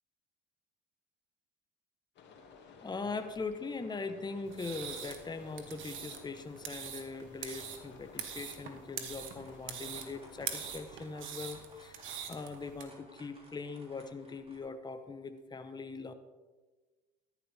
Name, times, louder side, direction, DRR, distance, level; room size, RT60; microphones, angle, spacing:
sound 1, 2.1-10.9, left 5 dB, 60° left, 2.2 m, -55 dB
voice 1, 2.8-16.1, left 4 dB, 20° left, 8 dB, 1.0 m, -41 dB
sound 2, 4.5-12.8, right 8 dB, 65° right, 1.5 m, -43 dB
sound 3, 8.8-14.6, right 1 dB, 25° right, 3.5 m, -58 dB
13.0 x 11.5 x 3.5 m, 1.3 s
supercardioid pair, 80°, 21 cm